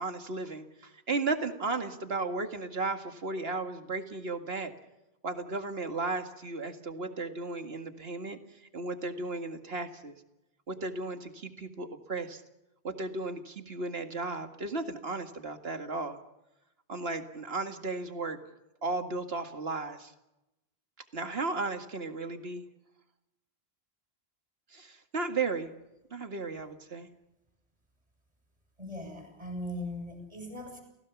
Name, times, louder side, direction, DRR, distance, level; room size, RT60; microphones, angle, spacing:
voice 1, 0.0-4.7 5.2-10.1 10.7-12.4 12.8-16.2 16.9-18.4 18.8-20.1 21.1-22.6 24.7-25.7 26.1-27.1, right 3 dB, 70° right, 7 dB, 2.2 m, -35 dB
voice 2, 28.8-30.8, left 1 dB, 35° right, 3 dB, 7.4 m, -39 dB
29.5 x 17.0 x 7.2 m, 0.93 s
omnidirectional pair, 1.1 m